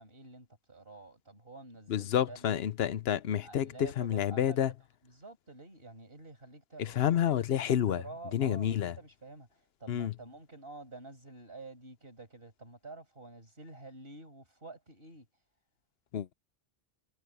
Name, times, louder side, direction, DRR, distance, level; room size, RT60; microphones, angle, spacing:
voice 1, 0.0-2.7 3.4-4.6 5.0-9.5 9.8-15.3, right 3 dB, 65° right, 5.9 m, -49 dB
voice 2, 1.9-4.7 6.8-8.0 8.3-8.9 9.9-10.1 16.1-16.3, left 10 dB, 80° left, 0.9 m, -29 dB
omnidirectional pair, 1.0 m